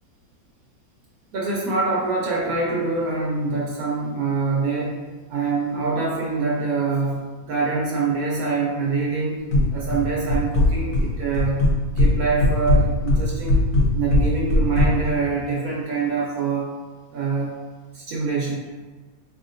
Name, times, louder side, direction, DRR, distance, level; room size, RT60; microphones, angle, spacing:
voice 1, 1.3-5.0 5.3-9.4 9.7-11.6 12.0-13.6 13.9-16.7 17.1-17.5 17.9-18.6, right 4 dB, 70° right, -2 dB, 0.8 m, -25 dB
sound 1, 9.5-10.0 10.3-11.1 11.3-12.1 12.4-14.9, left 2 dB, 70° left, 1.4 m, -18 dB
4.1 x 3.6 x 2.5 m, 1.3 s
omnidirectional pair, 2.0 m